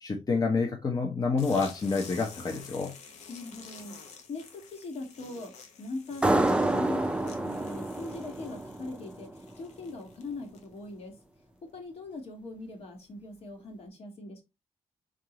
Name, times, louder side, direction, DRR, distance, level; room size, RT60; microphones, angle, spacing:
voice 1, 0.0-2.9, left 4 dB, 35° left, 0.8 m, -28 dB
sound 1, 1.4-10.9, left 5 dB, 90° left, 1.0 m, -50 dB
voice 2, 3.3-4.0 4.3-5.5 5.8-11.1 11.7-14.4, left 2 dB, 65° left, 1.6 m, -40 dB
sound 2, 6.2-9.5, right 2 dB, 10° right, 0.4 m, -28 dB
3.7 x 3.6 x 2.9 m
cardioid pair, 105°, 11 cm